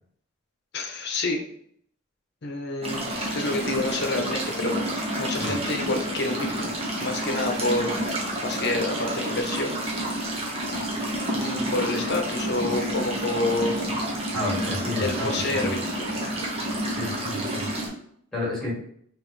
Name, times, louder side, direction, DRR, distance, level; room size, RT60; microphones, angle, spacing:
voice 1, 0.7-1.4 2.4-4.7 5.2-8.0 8.4-9.8 11.3-13.8 15.0-16.2, left 2 dB, 55° left, 3 dB, 0.8 m, -28 dB
sound 1, 2.8-17.9, right 1 dB, 30° right, 1.0 m, -29 dB
voice 2, 14.3-15.3 15.6-15.8 16.8-17.7 18.3-18.7, left 1 dB, 5° left, -5 dB, 1.8 m, -30 dB
5.3 x 3.0 x 3.1 m, 0.66 s
head